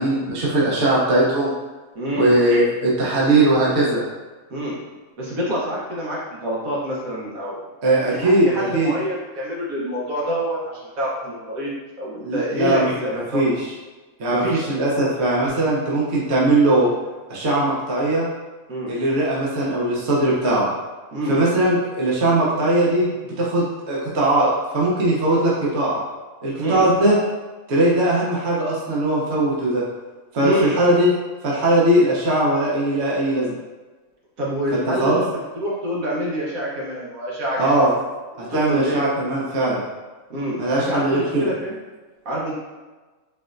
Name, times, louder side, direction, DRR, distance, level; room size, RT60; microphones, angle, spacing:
voice 1, 0.0-1.5 2.1-4.0 7.8-8.9 12.2-12.9 13.1-13.7 14.2-16.9 17.3-18.3 18.9-20.7 21.3-24.5 24.7-26.0 26.4-27.2 27.7-29.8 30.3-31.1 31.4-33.6 34.9-35.2 37.6-37.9 38.4-39.9 40.6-41.5, right 1 dB, 55° right, -5 dB, 1.1 m, -19 dB
voice 2, 1.9-2.4 4.5-4.8 5.2-7.6 8.1-11.7 12.0-13.4 14.3-14.7 18.7-18.9 21.1-21.4 26.6-26.8 30.4-30.8 34.4-35.3 35.6-37.9 38.3-39.0 40.3-41.8 42.2-42.5, equal, 75° right, -5 dB, 1.5 m, -26 dB
4.4 x 3.4 x 2.5 m, 1.3 s
omnidirectional pair, 1.5 m